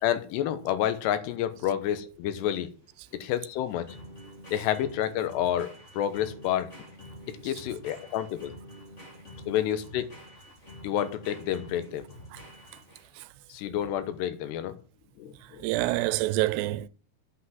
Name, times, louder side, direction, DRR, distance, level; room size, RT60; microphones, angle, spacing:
voice 1, 0.0-2.7 3.1-4.0 4.5-6.7 7.4-8.5 9.5-10.1 10.8-12.0 13.5-14.8 15.2-15.7, left 11 dB, 85° left, 3.2 m, -29 dB
sound 1, 1.6-13.3, equal, 25° left, 1.7 m, -48 dB
voice 2, 15.6-16.9, right 17 dB, 90° right, 2.8 m, -27 dB
8.3 x 5.9 x 7.8 m
omnidirectional pair, 4.7 m